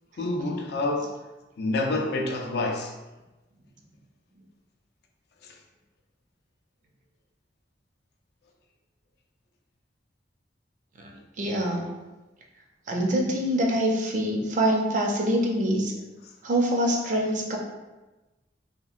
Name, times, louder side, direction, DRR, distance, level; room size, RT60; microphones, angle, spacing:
voice 1, 0.2-1.1 1.6-2.9 5.4-5.6, left 2 dB, 60° left, 2 dB, 0.4 m, -28 dB
voice 2, 11.4-11.9 12.9-15.9 16.4-17.6, right 1 dB, 45° right, 0 dB, 0.5 m, -25 dB
2.9 x 2.4 x 2.4 m, 1.1 s
head